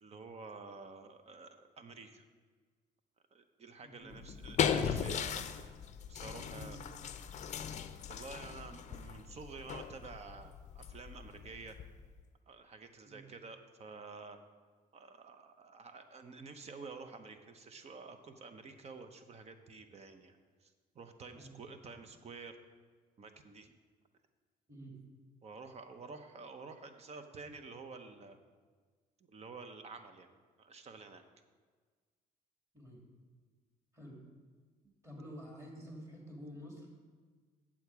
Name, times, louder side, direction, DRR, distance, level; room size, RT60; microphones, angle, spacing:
voice 1, 0.0-2.3 3.3-5.6 6.1-6.8 8.1-11.8 12.5-14.4 14.9-22.6 23.2-23.7 25.4-28.4 29.3-30.3 30.6-31.2 34.8-34.9, right 4 dB, 40° right, 8 dB, 0.8 m, -50 dB
sound 1, 4.1-12.2, left 7 dB, 45° left, 0.5 m, -38 dB
voice 2, 6.4-6.8 13.0-13.2 21.3-21.5 22.0-22.1 24.7-25.0 32.7-33.1 33.9-34.2 35.0-37.0, equal, 15° right, -1 dB, 2.7 m, -50 dB
8.4 x 7.3 x 4.7 m, 1.5 s
cardioid pair, 110°, 17 cm